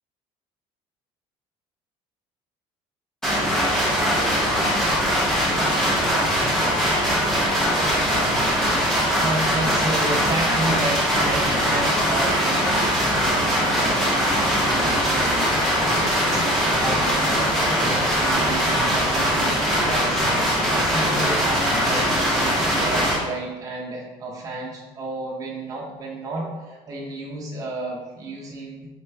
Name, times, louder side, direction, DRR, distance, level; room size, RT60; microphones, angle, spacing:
sound 1, 3.2-23.2, equal, 5° left, 0.8 m, -21 dB
voice 1, 9.1-15.5 16.0-28.9, right 2 dB, 30° right, -3 dB, 0.9 m, -32 dB
4.2 x 3.0 x 3.3 m, 1.2 s
cardioid pair, 170°, 12 cm